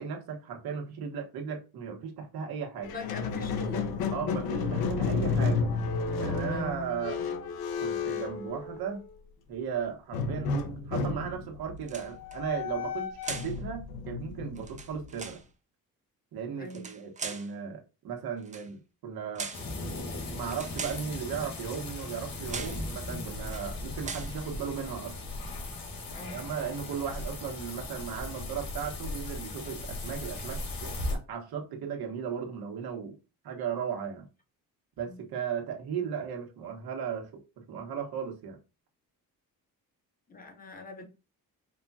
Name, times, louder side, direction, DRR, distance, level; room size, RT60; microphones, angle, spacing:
voice 1, 0.0-2.9 4.1-5.7 6.2-7.2 7.8-9.0 9.5-10.5 10.9-15.4 16.3-19.5 20.3-25.3 26.3-33.2 33.4-34.2 35.0-38.6, right 7 dB, 85° right, 1.3 m, -36 dB
Squeak, 2.8-9.2 10.1-15.3, left 4 dB, 85° left, 0.9 m, -32 dB
voice 2, 2.9-3.9 6.5-6.7 16.5-16.9 26.1-26.4 35.1-35.2 40.3-41.0, left 3 dB, 25° left, 0.9 m, -43 dB
sound 1, 11.8-12.4 13.2-13.6 14.5-15.4 16.6-17.5 18.4-18.7 19.3-19.7 20.5-21.1 22.0-22.2 22.5-22.8 23.4-23.7 24.0-24.4, right 5 dB, 20° right, 0.5 m, -40 dB
sound 2, 19.5-31.2, left 2 dB, 70° left, 1.8 m, -38 dB
5.2 x 2.4 x 4.1 m
cardioid pair, 150°, 36 cm